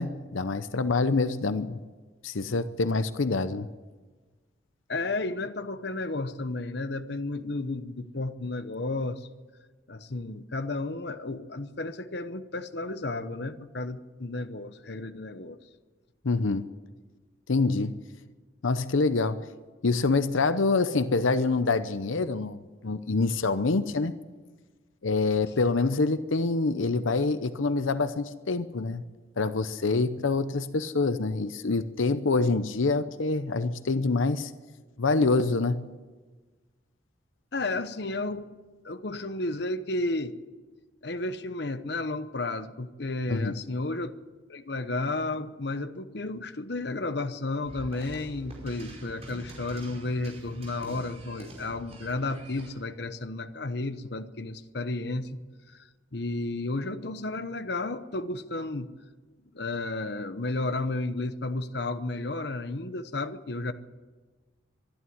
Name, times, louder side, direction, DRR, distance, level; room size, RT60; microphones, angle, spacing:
voice 1, 0.0-1.8 2.2-3.7 16.2-16.7 17.5-18.0 18.6-19.5 19.8-24.1 25.0-29.0 29.4-34.5 35.0-35.8 43.3-43.5, left 3 dB, 85° left, 12 dB, 0.8 m, -26 dB
voice 2, 4.9-9.2 9.9-15.6 37.5-38.5 38.8-40.3 41.0-44.1 44.5-55.4 56.1-58.9 59.5-63.7, left 2 dB, 55° left, 10 dB, 0.9 m, -32 dB
sound 1, 47.6-52.8, equal, 30° right, 5.2 m, -45 dB
24.0 x 11.5 x 9.4 m, 1.3 s
head